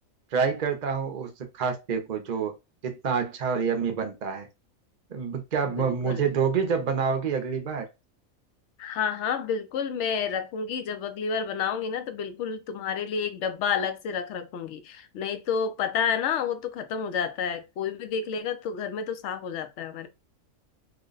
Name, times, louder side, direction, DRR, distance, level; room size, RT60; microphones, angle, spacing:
voice 1, 0.3-2.5 2.8-4.5 5.1-7.9, right 6 dB, 45° right, 0.6 m, -27 dB
voice 2, 5.8-6.2 8.8-20.1, left 6 dB, 65° left, 0.8 m, -30 dB
3.2 x 2.1 x 3.8 m
omnidirectional pair, 1.4 m